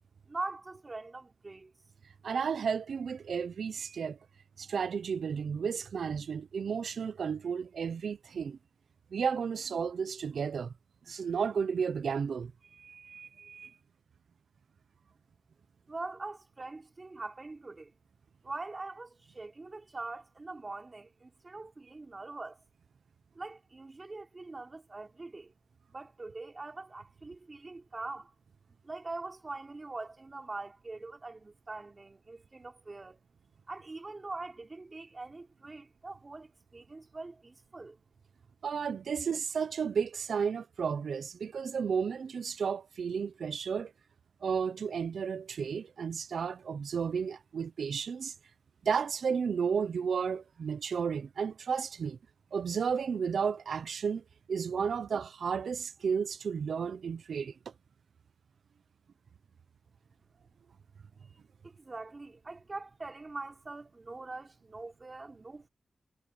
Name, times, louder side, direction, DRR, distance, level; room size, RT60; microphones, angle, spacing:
voice 1, 0.3-1.7 15.9-17.9 18.4-22.6 23.4-25.5 25.9-28.3 28.8-33.2 33.7-38.0 61.6-65.7, right 3 dB, 30° right, 3.6 m, -43 dB
voice 2, 2.2-4.2 4.6-8.6 9.1-10.7 11.1-13.7 38.6-43.9 44.4-48.3 48.8-52.2 52.5-57.5, right 6 dB, 75° right, 0.7 m, -33 dB
wide cardioid pair, 160°, 0 cm